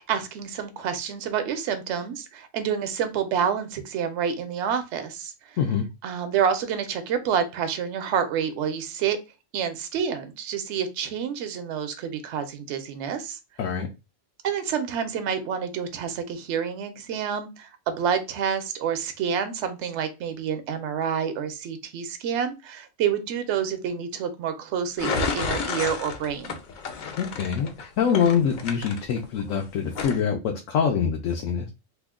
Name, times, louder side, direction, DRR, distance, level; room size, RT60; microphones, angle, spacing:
voice 1, 0.0-5.3 6.0-9.2 9.5-13.4 14.4-26.6, right 7 dB, 70° right, 9 dB, 0.9 m, -28 dB
sound 1, 25.0-29.5 29.9-30.2, left 5 dB, 65° left, 0.4 m, -31 dB
voice 2, 27.2-31.7, left 7 dB, 85° left, 2 dB, 1.0 m, -25 dB
3.0 x 2.1 x 3.5 m, 0.26 s
omnidirectional pair, 1.3 m